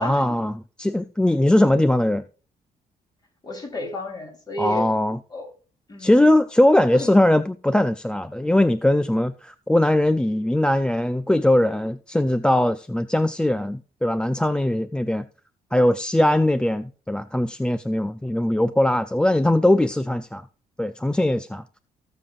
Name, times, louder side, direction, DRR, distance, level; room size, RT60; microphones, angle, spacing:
voice 1, 0.0-2.2 4.6-5.2 6.0-15.2 15.7-20.4 20.8-21.6, left 1 dB, 5° left, 0.4 m, -20 dB
voice 2, 3.4-4.9 5.3-5.5 5.9-6.1 6.9-7.1, left 1 dB, 25° left, 3.7 m, -31 dB
18.5 x 7.0 x 2.5 m
cardioid pair, 120°, 15 cm